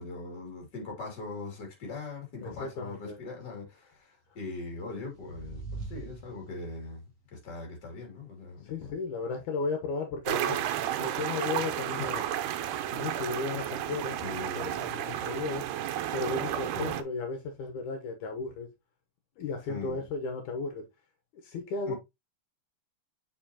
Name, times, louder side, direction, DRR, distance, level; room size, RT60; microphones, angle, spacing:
voice 1, 0.0-7.0 7.3-8.7 12.0-12.1 14.2-14.7 16.7-17.0 19.7-20.0 21.9-22.0, left 3 dB, 35° left, 3.1 m, -40 dB
voice 2, 2.4-3.2 8.6-10.6 11.0-12.3 12.9-14.2 14.6-15.7 16.1-18.7 19.4-20.8 21.4-21.9, left 4 dB, 75° left, 2.5 m, -35 dB
sound 1, 4.6-7.0, right 3 dB, 65° right, 1.0 m, -43 dB
sound 2, 10.2-17.0, right 11 dB, 85° right, 2.3 m, -32 dB
6.8 x 5.6 x 2.8 m
omnidirectional pair, 3.6 m